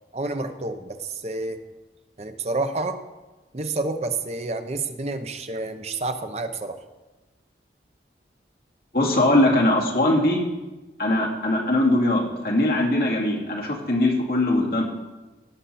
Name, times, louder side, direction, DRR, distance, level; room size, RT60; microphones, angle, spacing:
voice 1, 0.1-1.6 2.2-3.0 3.5-6.8, right 2 dB, 35° right, 8 dB, 0.7 m, -29 dB
voice 2, 8.9-10.5 11.0-14.8, left 1 dB, 55° left, -2 dB, 2.4 m, -21 dB
17.0 x 7.0 x 4.2 m, 1.1 s
head